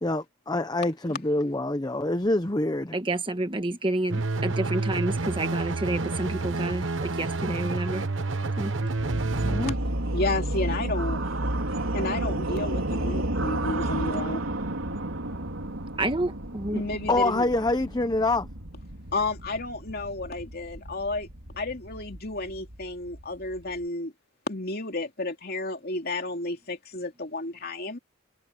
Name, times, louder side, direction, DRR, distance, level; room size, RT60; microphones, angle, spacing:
voice 1, 0.0-2.9 9.4-9.8 17.1-18.5, left 2 dB, 20° left, 0.8 m, -26 dB
voice 2, 2.9-8.1 8.6-8.8 16.0-16.8, right 2 dB, 25° right, 1.6 m, -29 dB
sound 1, 4.1-9.7, right 3 dB, 65° right, 1.0 m, -29 dB
sound 2, 8.9-23.8, right 1 dB, 85° right, 3.6 m, -32 dB
voice 3, 10.1-11.2 11.9-14.4 16.7-17.4 19.1-21.3 21.6-24.1 24.5-28.0, left 2 dB, 50° left, 2.8 m, -32 dB
head